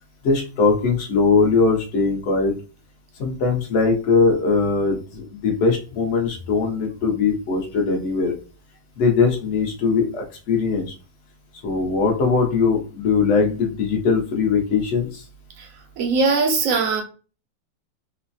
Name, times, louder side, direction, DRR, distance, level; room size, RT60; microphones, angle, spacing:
voice 1, 0.2-2.5 3.2-8.4 9.0-10.9 11.6-15.2, left 4 dB, 50° left, 0.9 m, -20 dB
voice 2, 16.0-17.0, right 4 dB, 65° right, 0.8 m, -20 dB
3.2 x 2.1 x 2.5 m
omnidirectional pair, 2.0 m